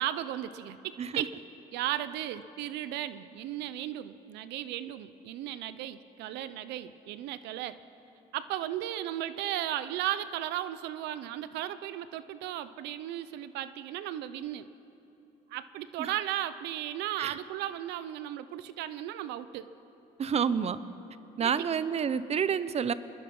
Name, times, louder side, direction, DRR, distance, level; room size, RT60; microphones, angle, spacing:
voice 1, 0.0-1.4 1.7-7.8 8.3-14.7 15.5-19.7 21.4-21.7, right 12 dB, 90° right, 13 dB, 0.8 m, -35 dB
voice 2, 20.2-20.8 21.4-22.9, right 7 dB, 40° right, 15 dB, 0.8 m, -29 dB
26.0 x 20.5 x 5.5 m, 2.9 s
cardioid pair, 110°, 17 cm